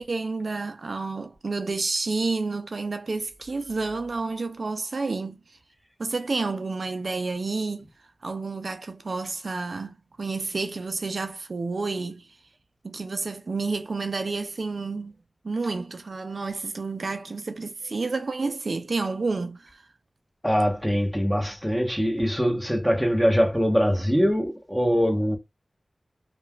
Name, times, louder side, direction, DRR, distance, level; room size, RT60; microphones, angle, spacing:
voice 1, 0.0-5.4 6.0-7.9 8.2-12.3 12.8-15.1 15.4-19.8, right 3 dB, 75° right, 0.4 m, -30 dB
voice 2, 20.4-25.4, equal, ahead, 0.9 m, -23 dB
3.2 x 2.2 x 2.2 m
wide cardioid pair, 50°, 0 cm